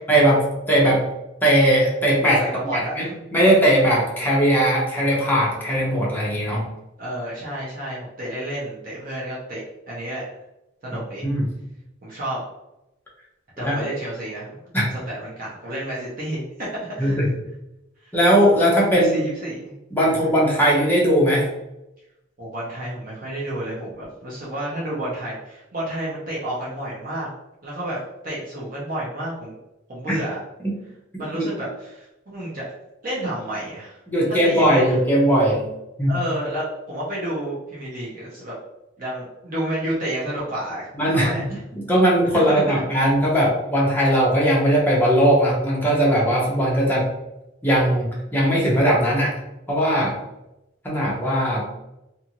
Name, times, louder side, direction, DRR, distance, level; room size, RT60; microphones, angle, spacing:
voice 1, 0.1-1.0 1.4-2.4 2.7-3.1 3.3-6.7 11.2-11.5 13.6-13.8 14.7-14.9 17.0-17.3 18.1-19.2 19.9-21.5 30.6-30.7 31.4-31.5 34.1-35.7 36.0-36.1 41.0-41.4 41.8-47.1 47.6-49.3 49.7-50.2 50.8-51.7, equal, 10° left, -5 dB, 0.7 m, -19 dB
voice 2, 2.4-3.1 7.0-9.6 9.9-10.2 10.8-11.3 12.0-12.4 13.6-14.6 14.9-17.2 18.0-18.1 18.9-19.8 20.0-20.3 22.4-27.3 27.6-28.0 28.2-29.6 29.9-30.4 31.2-32.6 33.0-34.0 34.4-35.0 36.1-38.5 39.0-41.4 42.3-42.8, right 1 dB, 45° right, -7 dB, 0.8 m, -30 dB
2.6 x 2.5 x 2.9 m, 0.90 s
head